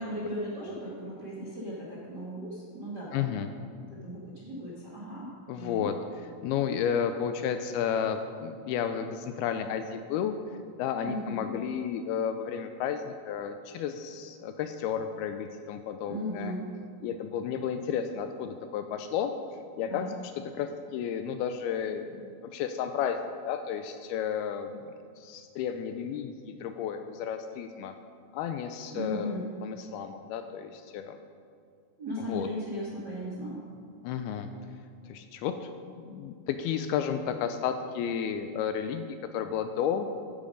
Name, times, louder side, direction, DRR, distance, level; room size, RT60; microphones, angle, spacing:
voice 1, 0.0-3.3 3.9-5.3 5.5-5.8 11.0-11.5 16.0-16.7 19.8-20.1 28.9-29.5 32.0-33.6, equal, 45° right, -6 dB, 1.3 m, -36 dB
voice 2, 3.1-3.5 5.5-5.9 6.4-10.3 10.8-16.5 17.0-19.3 19.8-23.2 23.4-24.9 25.2-27.9 28.3-31.2 32.2-32.5 34.0-34.5 35.0-35.7 36.0-40.1, left 8 dB, 85° left, 8 dB, 2.4 m, -32 dB
14.5 x 8.8 x 5.3 m, 2.2 s
omnidirectional pair, 4.7 m